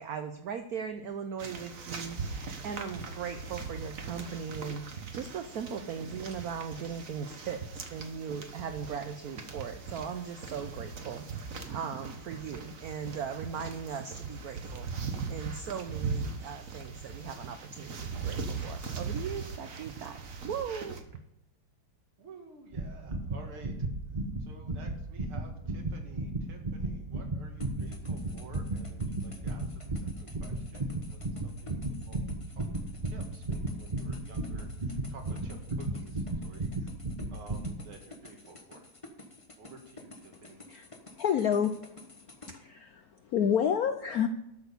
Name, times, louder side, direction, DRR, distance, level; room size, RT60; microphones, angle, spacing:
voice 1, 0.0-21.0, right 7 dB, 60° right, 8 dB, 1.0 m, -39 dB
sound 1, 1.4-21.0, right 4 dB, 45° right, 1.5 m, -40 dB
voice 2, 22.2-23.9 24.4-36.9 37.3-38.9 39.6-40.7, right 3 dB, 80° right, 3 dB, 2.7 m, -52 dB
sound 2, 22.7-37.8, right 2 dB, 25° right, 0.9 m, -35 dB
sound 3, 27.6-42.5, left 2 dB, 20° left, 1.1 m, -51 dB
voice 3, 41.2-41.8 42.5-44.3, left 8 dB, 70° left, 8 dB, 0.8 m, -28 dB
12.5 x 6.3 x 6.9 m, 0.86 s
omnidirectional pair, 2.3 m